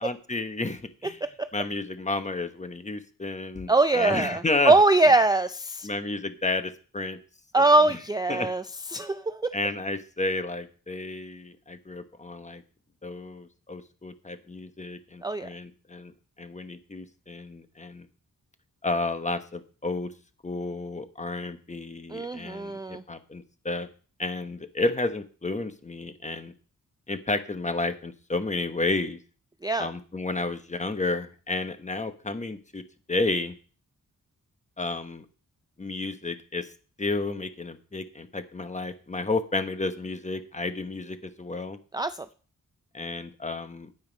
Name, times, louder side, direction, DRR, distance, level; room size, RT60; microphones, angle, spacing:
voice 1, 0.0-1.2 1.5-4.7 5.8-7.2 7.6-8.0 8.3-8.5 8.9-9.0 9.5-12.6 13.0-16.1 16.4-18.1 18.8-20.1 20.4-23.9 24.2-26.5 27.1-29.2 29.8-32.8 33.1-33.5 34.8-35.2 35.8-36.7 37.0-41.8 42.9-43.9, left 2 dB, 20° left, 10 dB, 1.1 m, -31 dB
voice 2, 3.7-5.9 7.5-8.6 8.9-9.5 15.2-15.5 22.1-23.0 29.6-29.9 41.9-42.2, right 2 dB, 15° right, 10 dB, 0.4 m, -22 dB
9.4 x 9.0 x 5.2 m, 0.38 s
wide cardioid pair, 105°, 32 cm